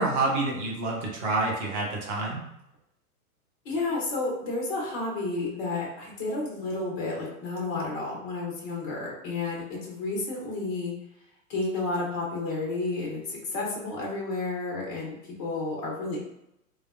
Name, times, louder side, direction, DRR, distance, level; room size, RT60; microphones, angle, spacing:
voice 1, 0.0-2.5, right 2 dB, 25° right, -1 dB, 0.7 m, -28 dB
voice 2, 3.6-10.9 11.5-16.2, left 3 dB, 15° left, -2 dB, 0.4 m, -31 dB
3.1 x 2.0 x 2.3 m, 0.82 s
figure-of-eight pair, 110°, 46 cm